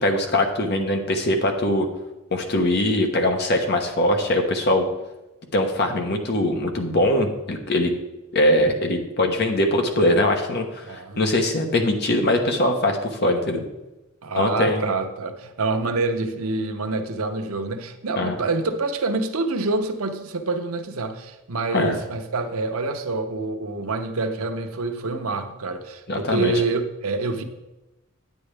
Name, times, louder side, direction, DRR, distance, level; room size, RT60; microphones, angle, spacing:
voice 1, 0.0-1.9 2.3-4.9 5.5-7.9 8.3-13.7 14.3-14.8 18.2-18.3 21.7-21.9 26.1-26.5, left 1 dB, 50° left, 4 dB, 1.1 m, -22 dB
voice 2, 10.8-11.3 14.2-27.4, right 3 dB, 80° right, 6 dB, 0.8 m, -26 dB
9.3 x 8.8 x 3.4 m, 1.0 s
head